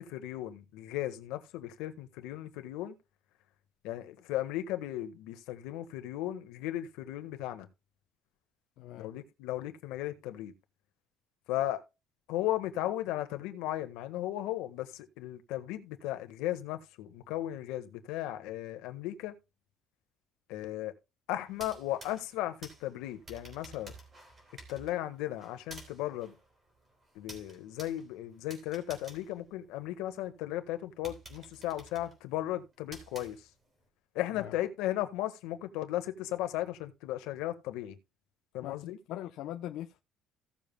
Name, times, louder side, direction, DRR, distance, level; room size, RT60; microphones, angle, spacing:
voice 1, 0.0-2.9 3.8-7.7 8.9-10.5 11.5-11.8 12.3-19.3 20.5-20.9 21.3-23.9 24.7-26.3 27.1-33.5 34.1-38.0 38.5-39.0, left 14 dB, 85° left, 1.4 m, -36 dB
voice 2, 8.8-9.1 34.4-34.6 38.6-40.0, left 13 dB, 65° left, 0.7 m, -41 dB
sound 1, 21.5-30.2 30.6-30.7 31.0-33.8, right 2 dB, 25° right, 3.4 m, -52 dB
16.5 x 7.2 x 2.2 m
cardioid pair, 155°, 0 cm